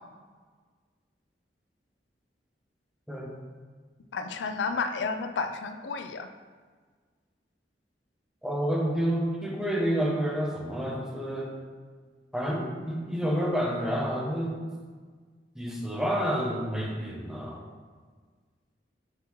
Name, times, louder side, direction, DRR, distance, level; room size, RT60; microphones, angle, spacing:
voice 1, 4.1-6.3, left 4 dB, 80° left, 7 dB, 0.4 m, -31 dB
voice 2, 8.4-11.6 12.3-14.6 15.5-17.6, equal, 5° right, -2 dB, 0.9 m, -29 dB
6.0 x 5.8 x 3.1 m, 1.5 s
head